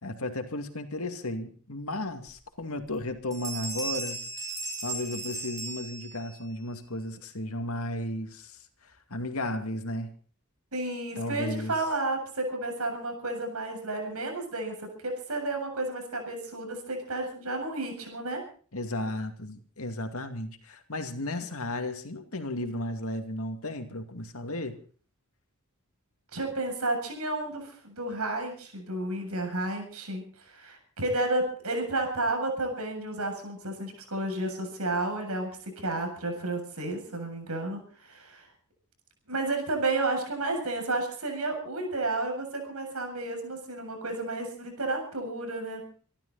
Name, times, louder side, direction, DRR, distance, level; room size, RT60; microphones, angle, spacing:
voice 1, 0.0-4.2 4.8-10.1 11.2-11.7 18.7-24.8, left 1 dB, 75° left, 6 dB, 2.4 m, -34 dB
sound 1, 2.3-2.4 2.8-3.0 3.3-6.5, right 2 dB, 15° right, 6.1 m, -36 dB
voice 2, 10.7-18.4 26.3-38.5 39.3-45.8, right 2 dB, 80° right, 3 dB, 7.5 m, -32 dB
26.0 x 13.0 x 4.1 m, 0.43 s
head